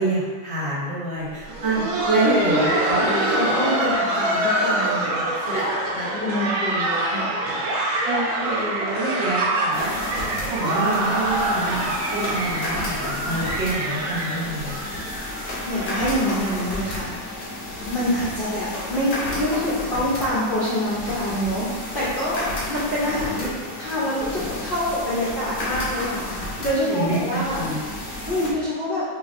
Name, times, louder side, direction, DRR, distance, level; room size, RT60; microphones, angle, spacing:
voice 1, 0.0-2.9 3.3-3.4 5.5-5.7 6.0-6.1 8.1-14.8 26.9-27.8, right 2 dB, 65° right, -9 dB, 2.0 m, -27 dB
Laughter, 1.4-17.0 17.3-17.4 18.0-18.1 18.7-18.9 19.9-20.0, right 1 dB, 85° right, 1.5 m, -25 dB
voice 2, 2.2-5.6 5.9-7.3 15.7-17.4 17.8-21.7 21.9-23.5 23.8-26.3 26.6-27.6 28.3-29.0, left 1 dB, 75° left, -9 dB, 0.4 m, -26 dB
sound 1, 9.7-28.5, left 1 dB, 55° left, 1.1 m, -32 dB
5.1 x 2.9 x 2.6 m, 1.5 s
omnidirectional pair, 2.2 m